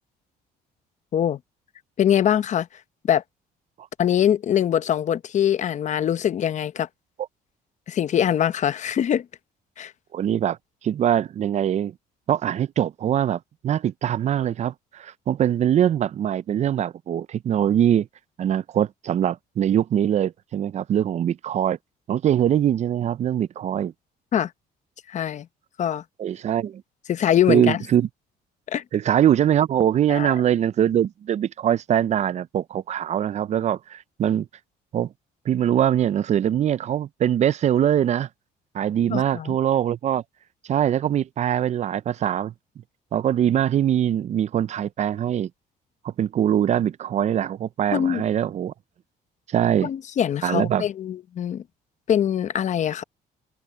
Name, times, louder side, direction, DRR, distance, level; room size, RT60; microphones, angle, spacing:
voice 1, 2.0-2.7 3.1-3.2 4.0-6.9 7.9-9.2 9.8-9.9 24.3-24.5 25.1-25.5 25.8-26.0 27.1-27.8 28.7-28.8 30.1-30.3 39.1-39.6 47.9-48.2 49.8-51.6 52.1-53.0, left 10 dB, 45° left, 0.8 m, -23 dB
voice 2, 10.1-10.6 10.8-11.9 12.3-18.1 18.4-21.8 22.1-23.9 26.2-26.8 27.5-28.1 28.9-34.5 34.9-35.1 35.5-38.3 38.7-40.2 40.7-42.5 43.1-45.5 46.0-48.7 49.5-49.9 50.4-50.8, right 10 dB, 40° right, 0.5 m, -22 dB
cardioid pair, 110°, 17 cm